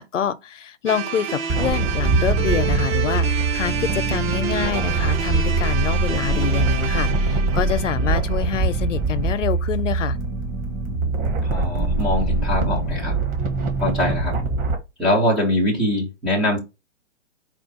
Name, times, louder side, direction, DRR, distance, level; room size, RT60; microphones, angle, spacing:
voice 1, 0.0-10.2, left 9 dB, 80° left, 0.7 m, -26 dB
sound 1, 0.9-9.0, right 8 dB, 55° right, 1.0 m, -29 dB
sound 2, 1.5-14.8, right 3 dB, 25° right, 1.1 m, -23 dB
voice 2, 10.9-13.2 13.8-14.4 15.0-16.6, left 1 dB, ahead, 0.3 m, -23 dB
4.4 x 2.4 x 4.7 m
hypercardioid pair, 130°, 37 cm